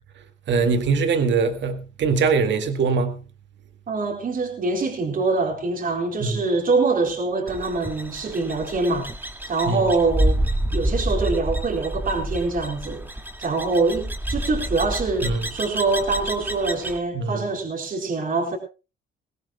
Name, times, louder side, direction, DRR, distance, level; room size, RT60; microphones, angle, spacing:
voice 1, 0.5-3.2 6.2-6.4 9.7-9.8 15.2-15.4 17.1-17.4, right 4 dB, 65° right, 2.0 m, -22 dB
voice 2, 3.9-9.1 9.5-10.4 10.7-13.0 13.4-18.6, right 3 dB, 45° right, 4.3 m, -24 dB
sound 1, 7.5-17.0, right 1 dB, 10° right, 2.0 m, -28 dB
22.0 x 17.0 x 2.2 m
cardioid pair, 90°, 20 cm